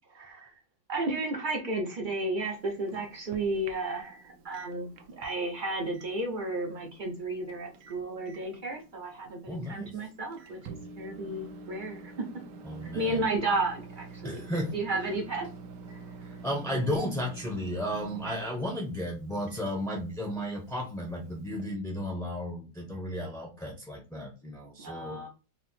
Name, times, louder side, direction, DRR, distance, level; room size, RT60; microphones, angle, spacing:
voice 1, 0.2-0.5 0.9-12.1 12.8-15.5 15.9-16.0 24.8-25.3, right 2 dB, 50° right, 1 dB, 0.5 m, -33 dB
Microwave oven, 2.4-21.8, right 4 dB, 75° right, 1.2 m, -48 dB
voice 2, 9.5-10.0 12.6-13.2 14.2-14.8 16.4-25.2, equal, ahead, 0 dB, 0.5 m, -34 dB
4.5 x 2.0 x 4.2 m, 0.31 s
omnidirectional pair, 2.0 m